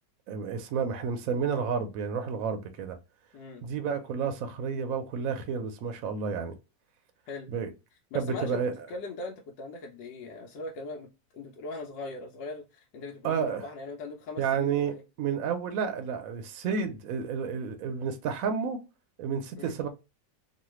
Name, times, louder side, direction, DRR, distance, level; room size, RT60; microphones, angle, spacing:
voice 1, 0.3-3.0 3.6-6.5 7.5-7.7 8.1-8.7 13.2-13.7 14.4-18.8 19.2-19.9, right 6 dB, 70° right, 0.8 m, -31 dB
voice 2, 8.1-15.0 19.6-19.7, left 2 dB, 90° left, 1.3 m, -40 dB
3.1 x 2.3 x 3.0 m
omnidirectional pair, 1.9 m